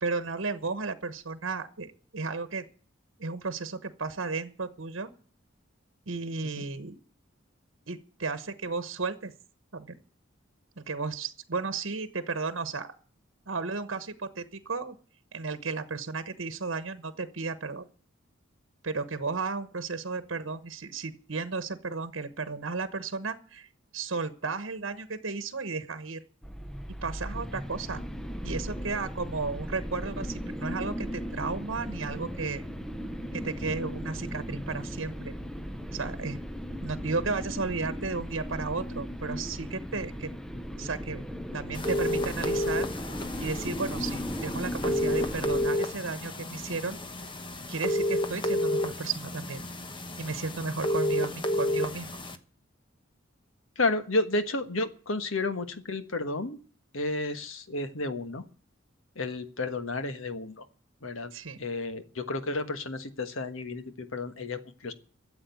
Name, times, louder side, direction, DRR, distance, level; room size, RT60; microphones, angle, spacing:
voice 1, 0.0-2.6 3.2-5.1 6.1-7.0 7.9-9.3 9.7-10.0 10.8-12.9 13.5-14.9 15.3-17.8 18.8-23.7 23.9-26.2 27.0-28.0 28.4-32.6 33.3-35.3 35.9-36.4 36.8-40.3 40.8-41.2 41.5-42.9 43.4-47.0 47.7-49.6 50.2-52.1 61.3-61.6, right 4 dB, 75° right, 11 dB, 1.2 m, -34 dB
sound 1, 26.4-45.7, equal, 5° left, 0.7 m, -37 dB
sound 2, 41.7-52.4, left 1 dB, 25° left, 1.1 m, -31 dB
voice 2, 53.8-56.6 56.9-58.4 59.2-60.6 61.0-61.3 61.6-64.9, left 2 dB, 90° left, 10 dB, 1.4 m, -31 dB
13.0 x 7.8 x 9.3 m, 0.41 s
head